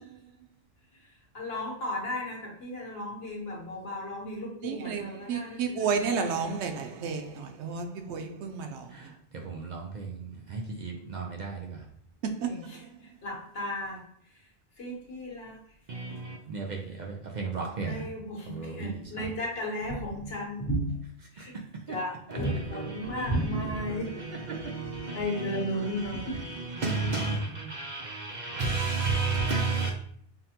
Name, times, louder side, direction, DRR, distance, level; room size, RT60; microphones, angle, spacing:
voice 1, 1.3-6.1 12.4-12.8 13.2-14.0 14.8-15.6 17.8-21.5 21.9-24.1 25.1-26.4, equal, 65° left, 1.3 m, -34 dB
voice 2, 4.6-8.8, right 5 dB, 85° right, 0.9 m, -31 dB
voice 3, 8.9-11.9 15.9-18.1 18.5-19.3 21.4-21.5 21.9-22.0 22.3-29.9, right 3 dB, 55° right, 0.6 m, -33 dB
5.6 x 2.1 x 2.8 m
omnidirectional pair, 1.1 m